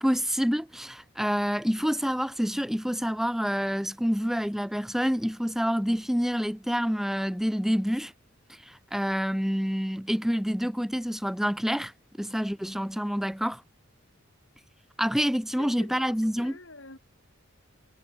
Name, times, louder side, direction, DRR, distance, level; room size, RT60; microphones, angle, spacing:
voice 1, 0.0-8.1 8.6-11.9 12.2-13.6 15.0-16.5, equal, ahead, 0.8 m, -27 dB
voice 2, 15.6-17.0, left 2 dB, 70° left, 6.1 m, -47 dB
head